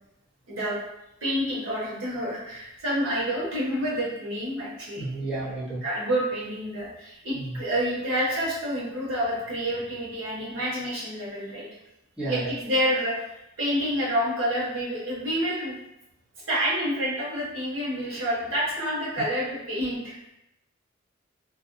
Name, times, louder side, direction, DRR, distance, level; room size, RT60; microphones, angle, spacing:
voice 1, 0.5-0.8 1.2-5.1 5.8-11.7 12.2-13.3 13.6-15.7 16.5-20.2, equal, 80° right, -7 dB, 1.2 m, -28 dB
voice 2, 5.0-5.8 7.3-7.6 12.2-12.5, right 2 dB, 5° right, -9 dB, 0.7 m, -32 dB
2.6 x 2.2 x 2.6 m, 0.89 s
head